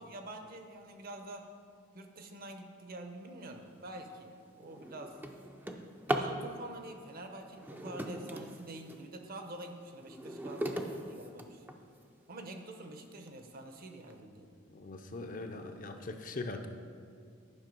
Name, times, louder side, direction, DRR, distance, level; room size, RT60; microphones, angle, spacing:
voice 1, 0.0-1.5 1.9-5.2 6.1-11.6 12.3-14.5, right 1 dB, 45° right, 5 dB, 0.7 m, -47 dB
Drawer open or close, 3.7-3.9 4.4-6.4 7.5-9.1 9.6-12.0 12.7-12.8 13.3-13.4 13.7-14.1, right 1 dB, 10° right, 0.4 m, -39 dB
voice 2, 14.7-16.7, left 2 dB, 40° left, 6 dB, 0.6 m, -41 dB
10.5 x 5.5 x 5.3 m, 2.2 s
head